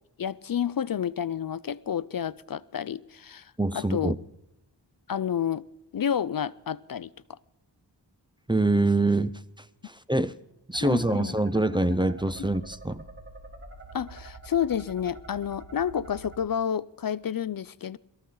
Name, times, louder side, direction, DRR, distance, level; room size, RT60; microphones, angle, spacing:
voice 1, 0.2-4.2 5.1-5.7 5.9-7.4 10.8-11.4 13.9-18.0, left 8 dB, 55° left, 19 dB, 0.5 m, -30 dB
voice 2, 3.6-4.2 8.5-9.4 9.8-10.3 10.7-13.0, right 2 dB, 10° right, 14 dB, 0.6 m, -25 dB
sound 1, 10.7-16.4, right 2 dB, 30° right, 2.9 m, -46 dB
22.0 x 14.0 x 3.8 m, 0.89 s
wide cardioid pair, 85°, 43 cm